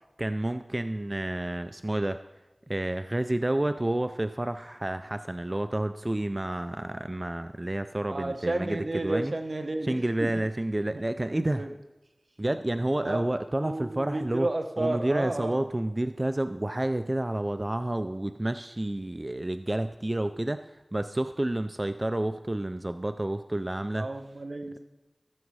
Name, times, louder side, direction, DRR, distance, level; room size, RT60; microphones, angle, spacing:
voice 1, 0.0-2.2 2.7-9.3 9.8-11.6 12.4-14.5 14.8-24.1, right 1 dB, 35° right, 10 dB, 0.4 m, -30 dB
voice 2, 8.1-10.4 10.9-11.0 11.3-11.7 13.0-13.3 13.6-15.6 24.0-24.8, right 2 dB, 75° right, 6 dB, 1.0 m, -32 dB
14.5 x 7.1 x 4.8 m, 1.0 s
wide cardioid pair, 45°, 0 cm